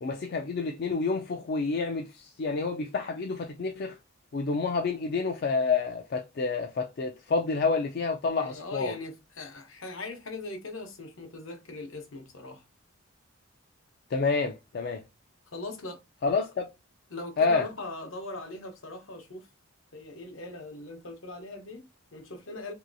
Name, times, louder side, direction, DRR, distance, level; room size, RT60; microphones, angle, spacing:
voice 1, 0.0-4.0 4.3-8.9 14.1-15.0 16.2-16.7 17.4-17.7, left 4 dB, 50° left, 0.3 m, -28 dB
voice 2, 8.4-12.6 15.5-16.0 17.1-19.5 19.9-22.7, left 2 dB, 70° left, 0.8 m, -40 dB
3.0 x 2.8 x 2.5 m
head